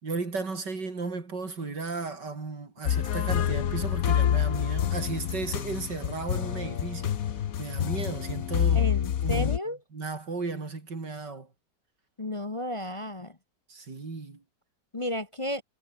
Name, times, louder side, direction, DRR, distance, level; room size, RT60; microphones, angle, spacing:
voice 1, 0.0-7.2 7.6-8.9 9.2-9.5 9.9-11.5 13.7-14.4, right 4 dB, 90° right, 4.5 m, -34 dB
sound 1, 2.9-9.6, left 10 dB, 60° left, 1.3 m, -27 dB
voice 2, 8.7-9.8 12.2-13.4 14.9-15.6, left 1 dB, 20° left, 0.9 m, -33 dB
omnidirectional pair, 1.8 m